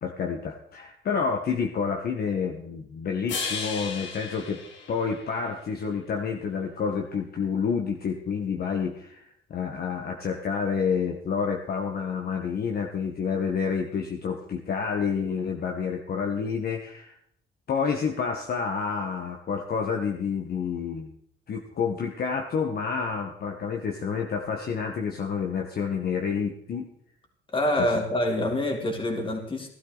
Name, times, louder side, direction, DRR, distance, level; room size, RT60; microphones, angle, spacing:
voice 1, 0.0-4.6 4.9-17.1 17.7-21.1 21.5-26.9 27.8-27.9, left 6 dB, 55° left, 2 dB, 1.5 m, -29 dB
sound 1, 3.3-5.6, left 5 dB, 70° left, 2.5 m, -35 dB
voice 2, 27.5-29.7, left 1 dB, 25° left, 2 dB, 3.0 m, -26 dB
15.5 x 12.5 x 4.1 m, 0.67 s
cardioid pair, 110°, 20 cm